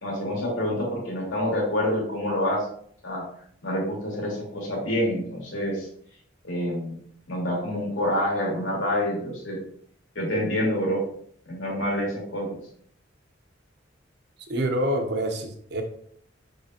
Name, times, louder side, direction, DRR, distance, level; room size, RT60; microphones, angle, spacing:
voice 1, 0.0-2.7 3.0-3.2 3.6-5.9 6.4-7.0 7.3-9.6 10.1-11.0 11.5-12.6, equal, 85° left, -4 dB, 2.6 m, -27 dB
voice 2, 14.5-15.8, right 1 dB, 60° right, 5 dB, 1.0 m, -26 dB
6.6 x 5.0 x 2.9 m, 0.64 s
head